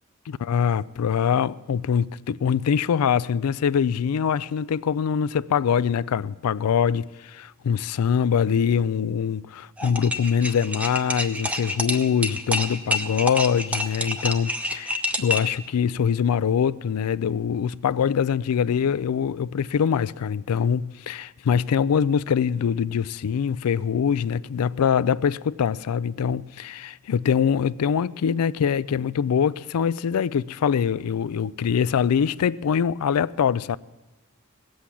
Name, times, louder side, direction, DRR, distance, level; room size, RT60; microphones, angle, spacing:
voice 1, 0.3-33.8, left 7 dB, 90° left, 0.4 m, -23 dB
sound 1, 9.8-15.6, left 1 dB, 5° right, 0.7 m, -28 dB
18.0 x 7.9 x 8.4 m
head